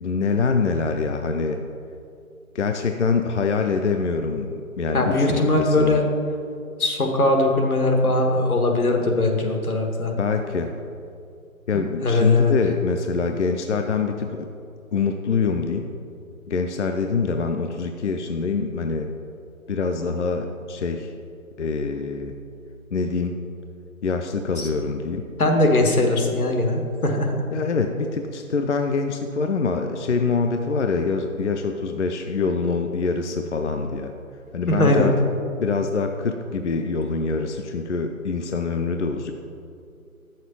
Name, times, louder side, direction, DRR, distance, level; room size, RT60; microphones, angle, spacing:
voice 1, 0.0-1.6 2.5-6.0 10.1-10.7 11.7-14.5 14.9-15.9 16.5-19.1 19.7-21.1 21.6-22.4 22.9-23.3 24.0-25.3 27.5-34.1 34.5-35.1 35.6-39.3, left 4 dB, 55° left, 5 dB, 0.5 m, -25 dB
voice 2, 4.9-6.0 6.8-10.1 12.0-12.5 24.6-24.7 25.4-27.4 34.7-35.1, left 2 dB, 85° left, 2 dB, 1.5 m, -20 dB
6.5 x 4.7 x 6.8 m, 2.5 s
figure-of-eight pair, 170°, 43 cm